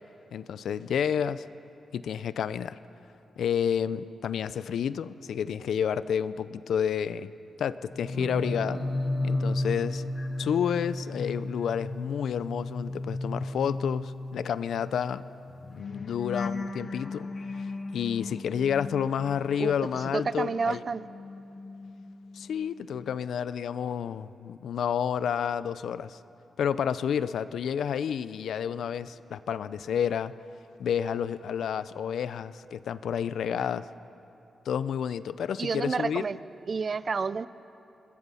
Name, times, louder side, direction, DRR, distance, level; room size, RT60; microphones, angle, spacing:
voice 1, 0.3-1.4 1.9-2.8 3.4-7.3 7.6-8.8 9.2-10.0 10.4-15.2 15.7-17.3 17.6-20.8 22.3-26.2 26.6-30.3 30.8-33.9 34.7-36.2, left 8 dB, 80° left, 15 dB, 0.5 m, -30 dB
sound 1, 7.8-20.1 20.4-22.5 22.8-23.1, left 2 dB, 35° left, 1.1 m, -35 dB
sound 2, 8.1-14.0, right 4 dB, 65° right, 1.6 m, -46 dB
voice 2, 20.1-21.1 35.6-36.4 36.7-37.5, right 5 dB, 35° right, 17 dB, 0.4 m, -29 dB
26.0 x 21.0 x 5.6 m, 2.9 s
wide cardioid pair, 160°, 0 cm